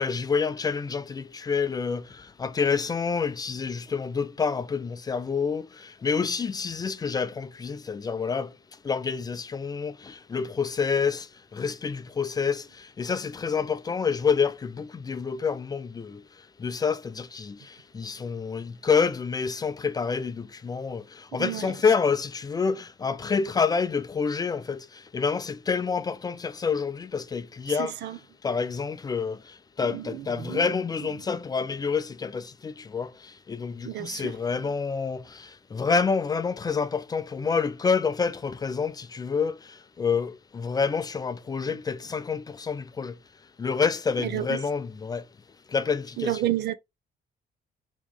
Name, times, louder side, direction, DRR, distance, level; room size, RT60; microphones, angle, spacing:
voice 1, 0.0-8.5 8.8-11.3 11.5-16.2 16.6-24.9 25.1-27.9 28.4-29.4 29.8-33.1 33.5-39.6 40.0-43.2 43.6-45.2 45.7-46.3, left 5 dB, 25° left, 0.4 m, -28 dB
voice 2, 21.4-21.7 27.7-28.2 29.8-30.7 33.8-34.8 41.6-41.8 44.2-44.6 46.2-46.7, right 13 dB, 90° right, 0.7 m, -32 dB
3.5 x 3.0 x 4.7 m
cardioid pair, 155°, 17 cm